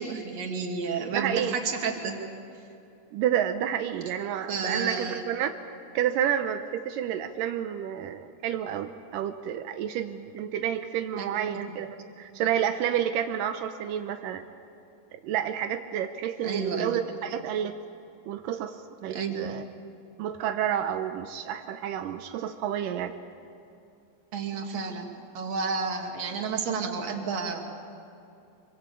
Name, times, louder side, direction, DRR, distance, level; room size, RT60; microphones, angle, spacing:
voice 1, 0.0-2.2 4.5-5.2 11.2-11.6 12.3-12.4 16.4-17.0 19.1-19.4 24.3-25.1 25.3-27.6, right 5 dB, 45° right, 2 dB, 3.1 m, -31 dB
voice 2, 1.1-1.6 3.1-5.5 5.9-11.9 12.2-14.4 15.2-17.8 18.3-19.6 20.2-23.1, right 10 dB, 80° right, 7 dB, 2.0 m, -30 dB
25.5 x 23.5 x 8.5 m, 2.6 s
omnidirectional pair, 4.9 m